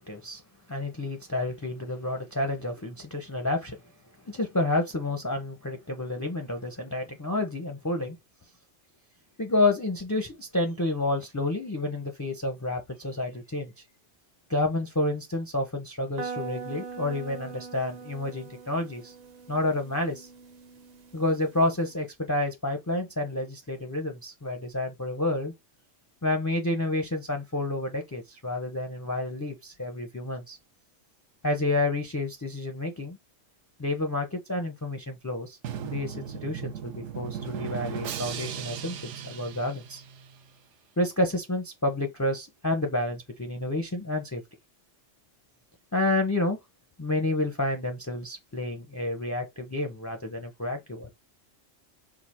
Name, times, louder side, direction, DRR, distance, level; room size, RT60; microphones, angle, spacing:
voice 1, 0.1-0.4 0.7-3.8 4.3-8.2 9.4-13.7 14.5-19.1 19.5-20.3 21.1-25.5 26.2-30.6 31.4-33.2 33.8-35.6 35.8-40.0 41.0-44.4 45.9-46.6 47.0-51.1, left 2 dB, 25° left, 0.4 m, -29 dB
sound 1, 16.2-21.9, right 5 dB, 50° right, 0.5 m, -42 dB
Drum, 35.6-40.5, right 8 dB, 75° right, 0.9 m, -37 dB
4.8 x 2.0 x 4.2 m
omnidirectional pair, 1.3 m